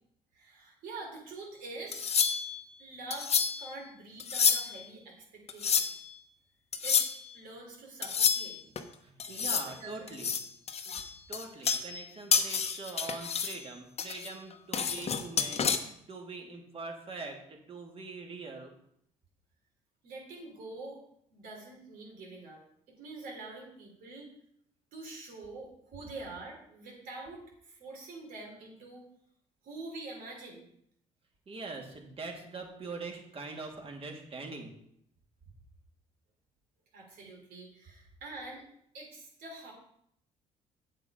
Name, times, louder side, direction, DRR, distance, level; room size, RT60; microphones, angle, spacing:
voice 1, 0.3-2.1 2.8-5.9 6.8-7.0 7.3-8.6 9.3-9.9 10.8-11.0 20.0-21.0 21.3-22.6 22.9-24.3 24.9-29.0 29.6-30.7 36.9-38.6 38.9-39.7, right 2 dB, 75° right, 0 dB, 3.6 m, -45 dB
sound 1, 1.9-2.6 3.1-3.7 4.2-4.8 5.5-6.1 6.7-7.2 8.0-8.8 9.2-9.7 10.1-12.1 12.3-13.6 14.0-15.8, left 6 dB, 45° left, 1.0 m, -29 dB
voice 2, 8.9-10.3 11.3-18.7 31.5-34.7, right 3 dB, 40° right, 1 dB, 2.5 m, -43 dB
8.0 x 7.7 x 5.1 m, 0.71 s
supercardioid pair, 80°, 15 cm